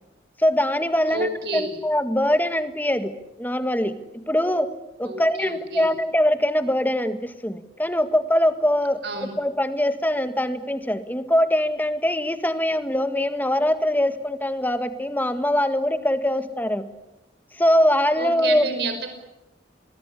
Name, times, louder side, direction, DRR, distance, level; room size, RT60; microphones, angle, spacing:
voice 1, 0.4-3.1 3.4-4.7 5.0-9.0 9.4-16.8 17.6-18.6, left 1 dB, 10° left, 9 dB, 1.7 m, -22 dB
voice 2, 1.1-1.7 5.0-5.9 9.0-9.3 18.1-19.1, right 2 dB, 60° right, 7 dB, 5.5 m, -29 dB
26.0 x 21.0 x 9.9 m, 0.96 s
head